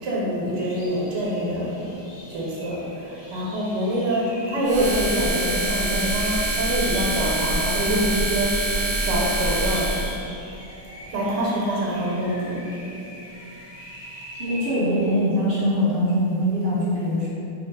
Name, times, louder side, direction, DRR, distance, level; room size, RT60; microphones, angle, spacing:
voice 1, 0.0-1.8 2.1-10.0 11.1-12.6, right 1 dB, 80° right, -5 dB, 1.2 m, -25 dB
sound 1, 0.5-14.8, equal, 80° left, 0.4 m, -42 dB
sound 2, 4.6-10.2, right 1 dB, 65° right, 1.0 m, -25 dB
voice 2, 14.4-17.3, equal, 35° right, -11 dB, 1.1 m, -22 dB
2.9 x 2.2 x 4.2 m, 2.8 s
omnidirectional pair, 1.8 m